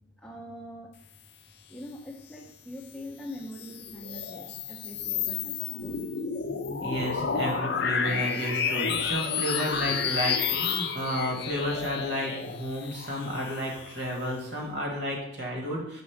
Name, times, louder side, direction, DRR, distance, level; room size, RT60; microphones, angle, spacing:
voice 1, 0.2-1.0 1.7-6.2, left 1 dB, 5° left, -2 dB, 0.6 m, -43 dB
sound 1, 3.4-14.3, left 6 dB, 50° left, 0.4 m, -31 dB
voice 2, 6.8-16.0, equal, 55° right, 0 dB, 1.4 m, -32 dB
5.1 x 3.7 x 4.9 m, 0.76 s
head